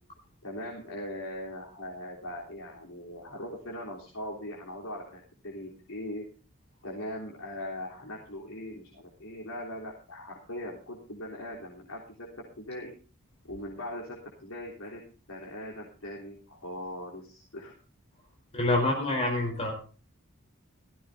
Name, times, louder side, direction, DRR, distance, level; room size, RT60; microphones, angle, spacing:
voice 1, 0.4-6.2 6.8-12.3 12.6-12.9 13.5-15.0 15.3-17.7, left 1 dB, 70° left, -3 dB, 3.5 m, -40 dB
voice 2, 18.5-19.7, left 2 dB, 30° left, 0 dB, 4.6 m, -26 dB
16.5 x 15.5 x 2.7 m, 0.38 s
head